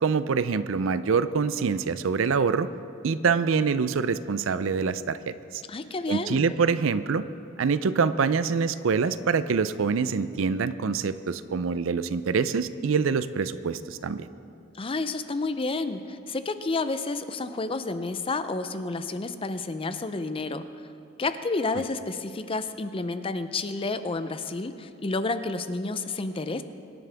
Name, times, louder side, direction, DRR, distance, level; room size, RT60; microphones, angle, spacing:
voice 1, 0.0-2.7 3.0-5.6 6.1-7.3 7.6-14.3, right 5 dB, 65° right, 14 dB, 0.5 m, -25 dB
voice 2, 5.7-6.5 14.7-20.7 21.2-26.6, left 3 dB, 25° left, 11 dB, 0.5 m, -30 dB
24.0 x 11.0 x 3.5 m, 2.7 s
head